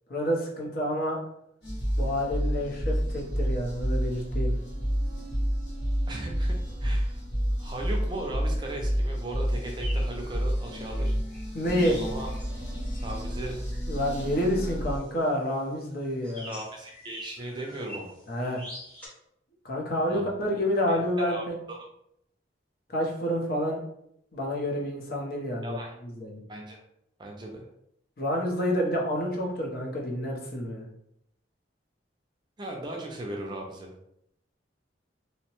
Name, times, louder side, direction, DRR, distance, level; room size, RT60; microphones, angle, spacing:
voice 1, 0.1-1.2 2.0-4.5 11.5-12.0 13.9-16.5 18.3-18.6 19.6-21.6 22.9-23.8 24.3-26.4 28.2-30.8, equal, 55° left, -2 dB, 0.7 m, -28 dB
sound 1, 1.6-15.0, equal, 85° left, 1.3 m, -29 dB
voice 2, 6.1-7.2 7.6-11.1 12.0-12.3 13.0-13.6 16.4-18.1 20.1-20.3 21.2-21.8 25.6-25.9 26.5-26.8 27.2-27.7 32.6-33.9, right 1 dB, 25° right, 0 dB, 0.4 m, -37 dB
sound 2, 9.5-19.1, equal, 10° left, 0.9 m, -47 dB
2.8 x 2.1 x 2.9 m, 0.75 s
head